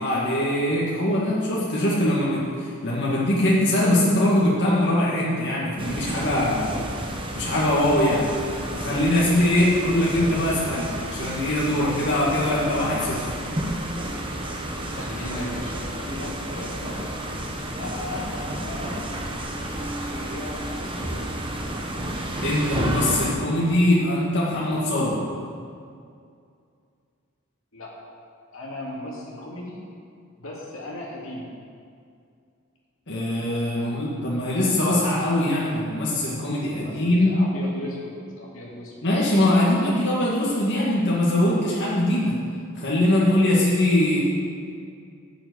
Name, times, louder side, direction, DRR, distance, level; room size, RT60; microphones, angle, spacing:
voice 1, 0.0-6.8 7.3-8.3 8.7-13.3 22.4-25.2 33.1-37.4 39.0-42.3 42.8-44.2, left 1 dB, 55° left, -7 dB, 2.0 m, -22 dB
sound 1, 5.8-23.4, right 1 dB, 25° right, 1.1 m, -31 dB
voice 2, 9.4-9.8 14.9-17.1 17.8-19.1 19.6-21.5 27.7-27.9 28.5-29.8 30.4-31.5 33.8-33.9 36.7-39.0, left 1 dB, 75° left, -4 dB, 2.3 m, -37 dB
8.0 x 7.2 x 8.2 m, 2.3 s
head